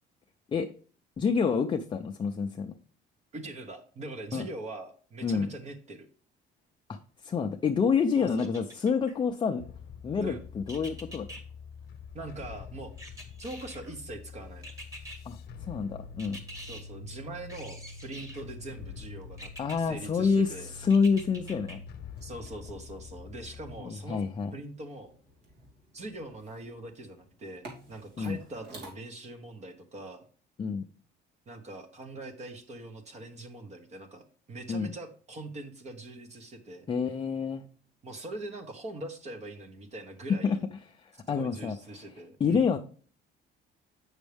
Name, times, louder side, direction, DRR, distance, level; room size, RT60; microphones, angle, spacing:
voice 1, 1.2-2.8 4.3-4.4 5.2-5.5 6.9-7.0 7.2-9.6 10.0-11.3 15.3-16.4 19.6-21.8 23.8-24.5 28.2-28.4 30.6-30.8 34.7-34.9 36.9-37.6 40.4-40.6 41.0-41.8 42.4-42.8, left 5 dB, 25° left, 4 dB, 0.5 m, -28 dB
voice 2, 3.3-6.1 8.2-8.5 10.2-10.4 12.1-13.1 13.4-14.7 16.6-19.5 19.8-20.7 22.2-24.3 24.5-25.1 25.9-30.2 31.5-36.9 38.0-40.6 41.3-42.7, right 2 dB, 35° right, 6 dB, 1.1 m, -42 dB
sound 1, 8.4-9.2 10.7-11.4 13.0-13.9 14.6-15.2 16.2-16.8 17.5-18.5 19.4-19.8 20.9-21.8 22.2-22.3, right 1 dB, 15° right, 1.6 m, -45 dB
sound 2, 9.6-23.8, left 5 dB, 65° left, 0.9 m, -46 dB
sound 3, 22.1-28.9, right 2 dB, 65° right, 2.8 m, -53 dB
8.1 x 6.2 x 3.4 m, 0.42 s
cardioid pair, 130°, 19 cm